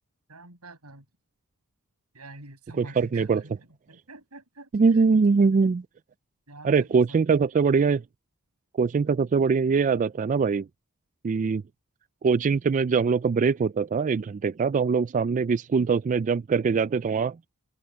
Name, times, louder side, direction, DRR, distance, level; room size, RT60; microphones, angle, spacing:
voice 1, 0.3-1.1 2.1-5.2 6.5-7.5, right 2 dB, 90° right, 7.5 m, -47 dB
voice 2, 2.8-3.4 4.7-5.8 6.6-8.0 8.8-10.7 11.2-11.6 12.2-17.4, right 5 dB, 35° right, 0.3 m, -22 dB
head